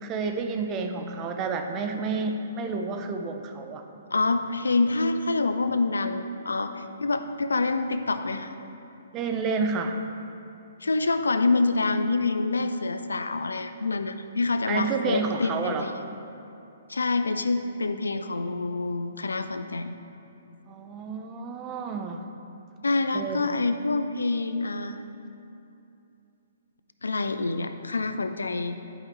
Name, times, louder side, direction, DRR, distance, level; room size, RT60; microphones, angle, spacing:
voice 1, 0.0-3.8 9.1-10.0 14.7-15.9 20.7-22.2 23.1-23.5, right 4 dB, 25° right, 5 dB, 0.6 m, -30 dB
voice 2, 4.1-8.5 10.8-15.9 16.9-19.9 22.8-25.0 27.0-28.8, left 3 dB, 80° left, 9 dB, 0.4 m, -26 dB
11.0 x 4.9 x 3.0 m, 2.8 s
figure-of-eight pair, 130°, 0 cm